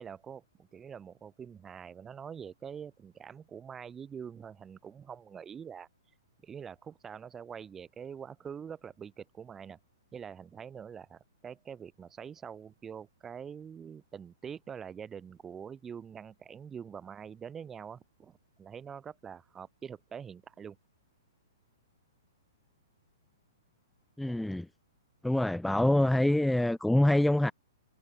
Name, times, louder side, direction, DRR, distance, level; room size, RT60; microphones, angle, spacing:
voice 1, 0.0-5.9 6.4-9.8 10.1-20.8 24.3-24.4, right 7 dB, 15° right, 4.0 m, -45 dB
voice 2, 24.2-24.7 25.2-27.5, left 1 dB, ahead, 0.5 m, -25 dB
figure-of-eight pair, 115°, 2 cm